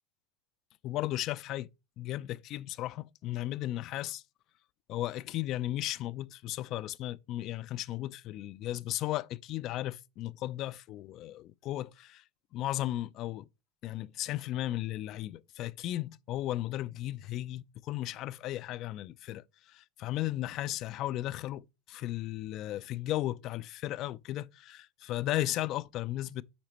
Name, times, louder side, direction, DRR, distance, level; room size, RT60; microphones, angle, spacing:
voice 1, 0.8-1.7 2.0-4.2 4.9-12.2 12.5-13.5 13.8-26.4, left 14 dB, 45° left, 0.4 m, -35 dB
9.6 x 4.3 x 2.9 m
hypercardioid pair, 90°, 0 cm